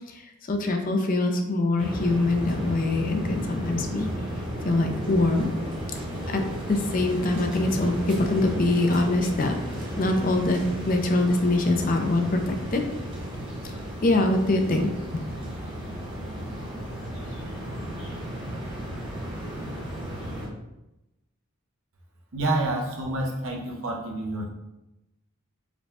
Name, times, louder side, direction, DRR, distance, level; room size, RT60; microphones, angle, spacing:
voice 1, 0.5-4.1 4.6-5.5 6.3-9.5 10.0-12.8 14.0-14.9, left 2 dB, 40° left, 5 dB, 0.4 m, -24 dB
sound 1, 1.8-20.5, equal, 25° right, 1.0 m, -34 dB
voice 2, 22.3-24.5, right 2 dB, 65° right, 1 dB, 0.8 m, -28 dB
4.8 x 2.2 x 3.4 m, 0.93 s
head